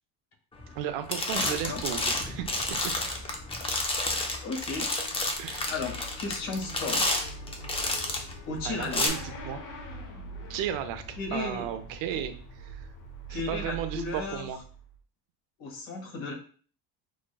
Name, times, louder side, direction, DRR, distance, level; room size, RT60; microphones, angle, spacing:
sound 1, 0.6-0.8 1.1-8.3 8.8-9.1, left 2 dB, 15° left, 0.4 m, -30 dB
voice 1, 0.8-2.9 5.4-5.7 8.6-9.6 10.5-12.3 12.6-12.9 13.3-14.6, right 10 dB, 70° right, 8 dB, 0.6 m, -34 dB
Motorcycle / Accelerating revving vroom, 1.2-14.9, right 1 dB, 45° left, 0.9 m, -44 dB
voice 2, 1.3-1.8 4.0-4.9 5.4-7.2 8.5-9.1 11.2-11.7 12.1-12.2 13.3-14.5 15.6-16.3, left 3 dB, 75° left, 0 dB, 1.5 m, -35 dB
6.1 x 2.1 x 2.2 m, 0.43 s
cardioid pair, 135°, 47 cm